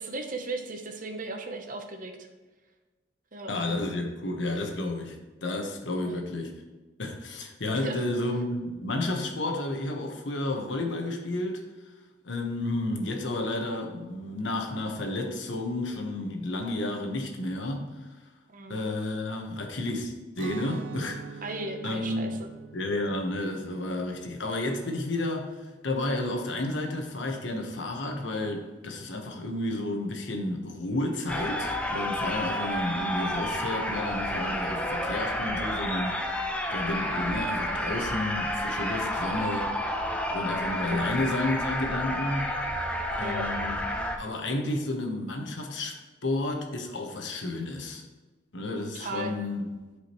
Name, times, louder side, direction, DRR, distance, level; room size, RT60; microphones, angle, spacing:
voice 1, 0.0-2.3 3.3-3.5 6.0-6.2 7.7-8.0 18.5-18.8 21.4-22.5 40.9-41.1 43.2-43.5 48.9-49.3, right 2 dB, 45° right, 0.9 m, -36 dB
voice 2, 3.5-5.2 5.4-6.6 7.0-11.6 12.2-17.9 18.7-21.4 21.8-22.3 22.7-39.7 40.3-42.5 43.2-43.8 44.2-48.0 48.5-49.7, left 2 dB, 75° left, 1.2 m, -31 dB
Guitar, 20.3-26.2, right 4 dB, 80° right, 0.4 m, -44 dB
sound 1, 31.3-44.2, equal, 5° left, 0.6 m, -30 dB
11.5 x 4.9 x 3.1 m
head